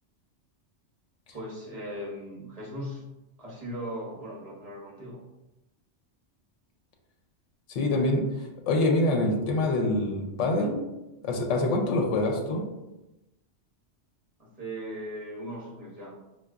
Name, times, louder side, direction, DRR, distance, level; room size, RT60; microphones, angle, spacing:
voice 1, 1.3-3.0 3.4-5.2 14.4-16.1, equal, 35° right, -4 dB, 0.8 m, -38 dB
voice 2, 7.7-8.2 8.7-10.7 11.2-12.7, left 2 dB, 85° left, 2 dB, 0.9 m, -25 dB
4.5 x 2.3 x 2.3 m, 0.97 s
omnidirectional pair, 1.2 m